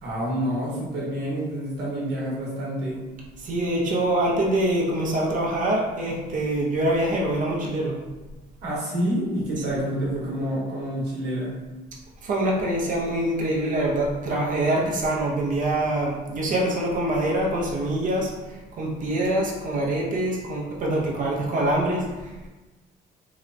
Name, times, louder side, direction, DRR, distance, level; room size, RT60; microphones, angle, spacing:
voice 1, 0.0-3.0 8.6-11.5, equal, 80° right, -6 dB, 1.1 m, -28 dB
voice 2, 3.4-8.0 9.6-9.7 12.2-22.3, right 1 dB, 50° right, -3 dB, 0.6 m, -25 dB
2.9 x 2.1 x 2.5 m, 1.2 s
cardioid pair, 110°, 17 cm